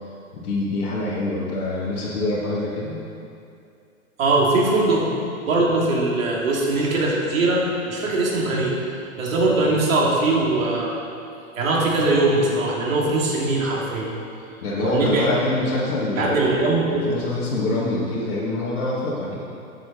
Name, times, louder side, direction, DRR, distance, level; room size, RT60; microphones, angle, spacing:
voice 1, 0.0-3.0 14.6-16.6 16.9-19.4, left 2 dB, 80° left, -9 dB, 2.4 m, -25 dB
voice 2, 4.2-5.1 5.5-8.8 9.2-11.0 11.6-14.1 14.8-15.2 16.2-17.1, right 2 dB, 65° right, -4 dB, 2.9 m, -21 dB
13.5 x 7.8 x 4.2 m, 2.5 s
hypercardioid pair, 165°, 43 cm